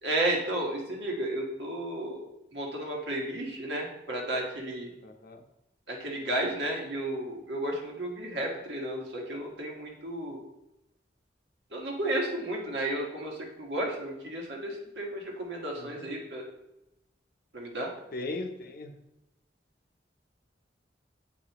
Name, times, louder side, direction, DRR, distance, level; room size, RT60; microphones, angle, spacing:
voice 1, 0.0-2.2 2.5-4.9 5.9-10.4 11.7-16.4 17.5-17.9, right 1 dB, 75° right, -1 dB, 1.5 m, -33 dB
voice 2, 5.0-5.4 15.7-16.1 18.1-18.9, left 2 dB, 55° left, 6 dB, 0.7 m, -38 dB
7.5 x 4.9 x 3.0 m, 0.90 s
head